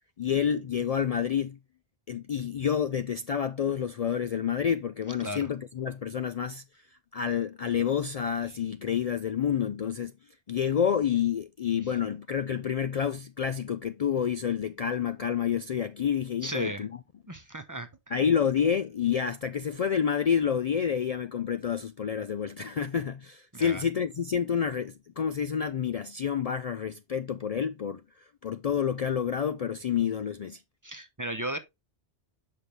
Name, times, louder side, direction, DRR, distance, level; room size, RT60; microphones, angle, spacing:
voice 1, 0.2-1.6 2.1-6.6 7.1-10.1 10.5-17.0 18.1-28.0 28.4-30.6, left 8 dB, 75° left, 0.3 m, -28 dB
voice 2, 16.4-16.9 17.3-17.9 23.5-23.8 30.8-31.6, right 1 dB, 20° right, 0.7 m, -35 dB
7.6 x 5.5 x 3.2 m
omnidirectional pair, 1.2 m